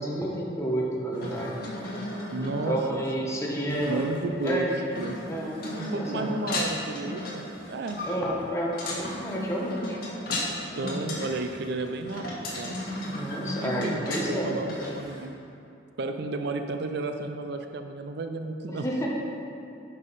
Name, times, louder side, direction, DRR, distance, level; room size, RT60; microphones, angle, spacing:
voice 1, 0.0-1.6 2.7-4.0 4.4-4.8 5.3-5.6 5.9-6.4 8.0-10.0 13.0-14.6 18.7-19.1, right 1 dB, 15° left, -3 dB, 1.2 m, -30 dB
sound 1, 1.1-15.2, left 1 dB, 55° left, 1.5 m, -35 dB
voice 2, 2.3-3.1 3.8-4.7 5.0-5.2 5.8-8.0 10.8-12.3 12.6-12.8 13.6-15.3 16.0-18.9, right 3 dB, 65° right, 6 dB, 0.5 m, -32 dB
10.0 x 5.5 x 4.1 m, 2.6 s
head